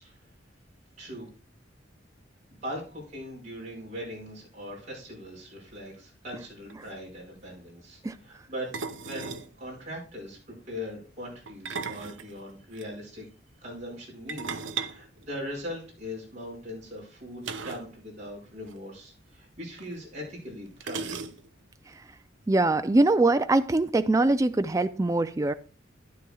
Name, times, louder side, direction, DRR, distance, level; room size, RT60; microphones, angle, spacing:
voice 1, 1.0-1.3 2.6-8.7 9.0-10.4 10.7-13.2 13.6-21.2, equal, 40° right, -3 dB, 5.4 m, -40 dB
sound 1, 6.4-6.5 6.7-6.9 8.7-9.5 11.5-12.9 14.3-15.9 17.4-17.9 18.2-18.3 18.6-18.8 19.8-19.9 20.8-21.7, right 5 dB, 70° right, 0.7 m, -37 dB
voice 2, 22.5-25.5, right 2 dB, 15° right, 10 dB, 0.3 m, -23 dB
12.5 x 10.0 x 2.3 m, 0.38 s
head